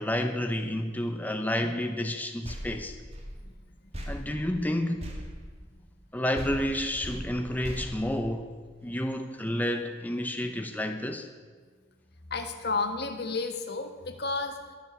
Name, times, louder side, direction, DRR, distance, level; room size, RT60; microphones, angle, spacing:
voice 1, 0.0-2.9 4.1-5.0 6.1-8.5 8.8-11.3, left 1 dB, 10° left, 5 dB, 0.8 m, -30 dB
sound 1, 2.4-6.1 6.3-8.8, equal, 35° right, 2.4 m, -40 dB
voice 2, 12.3-14.8, left 3 dB, 60° left, 6 dB, 1.6 m, -32 dB
22.0 x 7.6 x 7.1 m, 1.5 s
head